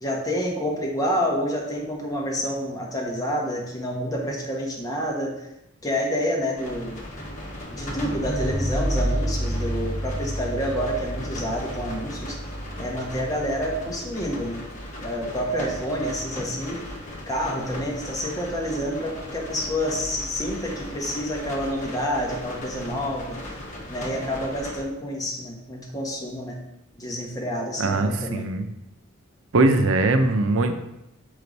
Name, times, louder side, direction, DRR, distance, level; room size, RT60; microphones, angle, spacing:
voice 1, 0.0-5.3 5.8-7.0 7.7-12.4 12.8-14.7 15.0-16.8 17.3-23.4 23.9-26.6 27.0-28.5, equal, 20° left, -2 dB, 1.3 m, -28 dB
sound 1, 6.6-24.8, equal, 40° left, 1.4 m, -33 dB
voice 2, 27.8-28.7 29.5-30.7, right 2 dB, 90° right, 7 dB, 0.7 m, -21 dB
6.8 x 5.0 x 4.0 m, 0.86 s
head